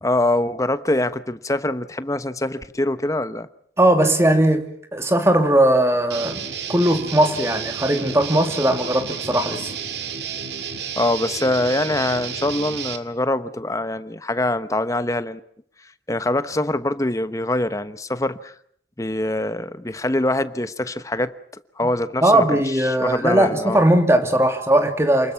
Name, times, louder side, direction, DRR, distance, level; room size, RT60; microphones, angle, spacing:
voice 1, 0.0-3.5 11.0-15.4 16.1-18.5 19.0-21.3 21.8-23.8, left 1 dB, 20° left, 1.1 m, -24 dB
voice 2, 3.8-9.7 22.2-25.3, right 1 dB, 15° right, 2.8 m, -19 dB
Guitar, 6.1-13.0, right 7 dB, 75° right, 2.2 m, -31 dB
29.0 x 21.0 x 5.8 m
head